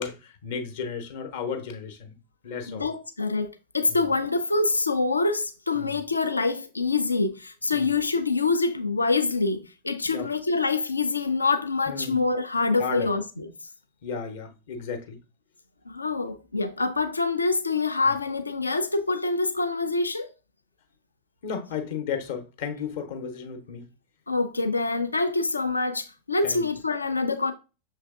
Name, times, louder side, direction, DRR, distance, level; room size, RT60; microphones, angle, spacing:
voice 1, 0.0-2.2 2.4-2.9 3.9-4.1 5.7-6.0 7.7-7.9 10.0-10.3 11.9-12.2 12.8-13.1 14.0-15.2 18.1-18.2 21.4-23.9 26.4-26.6, left 6 dB, 55° left, 0.8 m, -34 dB
voice 2, 2.7-13.5 15.9-20.3 24.3-27.5, left 3 dB, 80° left, 0.4 m, -25 dB
6.3 x 3.2 x 2.3 m
figure-of-eight pair, 90°, 0 cm